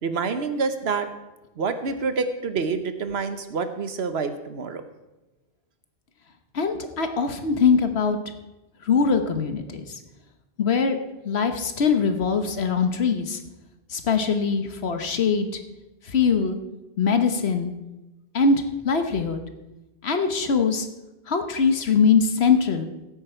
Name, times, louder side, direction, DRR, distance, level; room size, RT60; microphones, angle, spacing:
voice 1, 0.0-1.1 1.6-4.8, right 4 dB, 75° right, 9 dB, 1.2 m, -27 dB
voice 2, 6.5-8.2 8.9-9.8 10.6-11.0 11.2-13.4 13.9-15.5 16.1-16.6 17.0-17.7 18.3-19.4 20.0-20.9 21.3-22.9, left 5 dB, 75° left, 7 dB, 1.3 m, -22 dB
15.5 x 8.6 x 4.4 m, 1.0 s
omnidirectional pair, 1.1 m